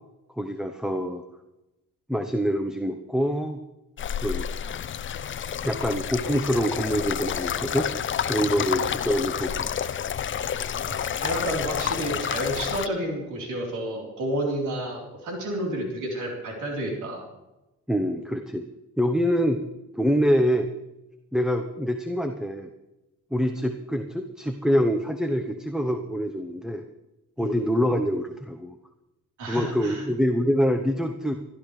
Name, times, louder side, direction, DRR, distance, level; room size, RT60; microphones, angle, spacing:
voice 1, 0.3-1.2 2.1-3.6 4.2-4.5 5.6-7.9 8.2-9.9 17.9-18.6 19.0-19.6 19.9-20.7 21.3-22.7 23.3-26.8 27.4-28.8 29.4-31.3, equal, ahead, 6 dB, 1.0 m, -25 dB
sound 1, 4.0-12.9, left 8 dB, 40° left, 0.6 m, -29 dB
voice 2, 10.9-17.3 27.4-27.5 29.4-30.0, right 1 dB, 80° right, -1 dB, 3.9 m, -30 dB
21.0 x 12.0 x 3.3 m, 0.96 s
cardioid pair, 90°, 30 cm